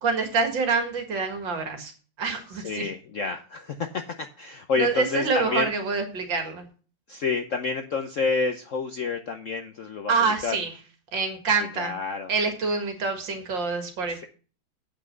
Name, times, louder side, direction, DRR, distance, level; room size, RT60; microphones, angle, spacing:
voice 1, 0.0-1.9 2.2-2.9 4.8-6.6 10.1-10.7 11.1-11.9 12.3-14.3, right 4 dB, 65° right, 6 dB, 2.5 m, -26 dB
voice 2, 2.5-5.7 7.1-10.1 10.4-10.6 11.8-12.3 14.1-14.3, left 4 dB, 60° left, 7 dB, 0.8 m, -29 dB
8.4 x 6.0 x 6.6 m, 0.38 s
omnidirectional pair, 2.2 m